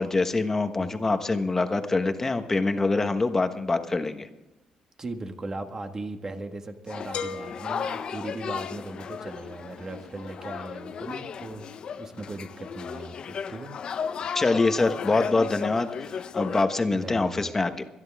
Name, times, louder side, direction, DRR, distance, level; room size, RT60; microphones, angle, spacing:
voice 1, 0.0-4.3 14.3-17.8, left 3 dB, 20° left, 7 dB, 1.2 m, -25 dB
voice 2, 5.0-13.7 16.9-17.5, right 2 dB, 25° right, 6 dB, 1.7 m, -38 dB
sound 1, 6.9-16.6, left 7 dB, 50° left, 0.8 m, -35 dB
sound 2, 7.1-9.0, left 6 dB, 75° left, 1.6 m, -39 dB
26.0 x 10.5 x 3.6 m, 1.0 s
cardioid pair, 130°, 2 cm